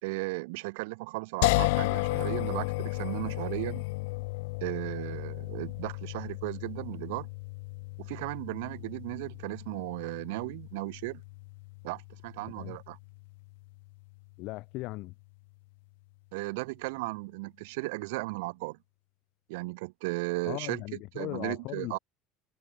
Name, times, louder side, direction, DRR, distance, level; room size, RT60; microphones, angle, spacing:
voice 1, 0.0-3.8 4.6-7.3 8.0-11.2 11.8-13.0 16.3-18.8 19.5-20.8 21.1-22.0, right 25 dB, 85° right, 1.7 m, -35 dB
sound 1, 1.4-14.5, left 25 dB, 85° left, 1.9 m, -34 dB
voice 2, 14.4-15.1 20.5-22.0, left 21 dB, 55° left, 4.5 m, -38 dB
cardioid pair, 160°, 0 cm